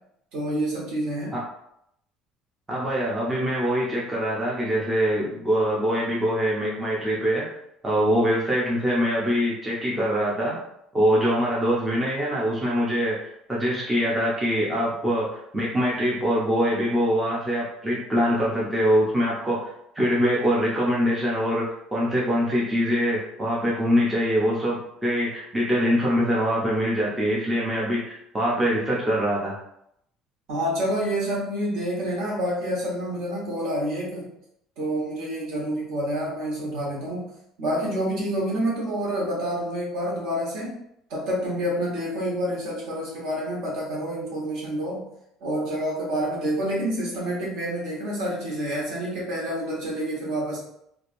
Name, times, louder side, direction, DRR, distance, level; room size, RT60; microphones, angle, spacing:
voice 1, 0.3-1.3 30.5-34.3 34.8-37.3 37.6-40.8 41.1-45.0 45.4-50.6, right 1 dB, 55° right, -4 dB, 1.2 m, -28 dB
voice 2, 2.7-7.5 7.8-10.6 10.9-29.6, equal, 10° right, -6 dB, 0.4 m, -24 dB
3.1 x 2.5 x 2.5 m, 0.77 s
cardioid pair, 180°, 0 cm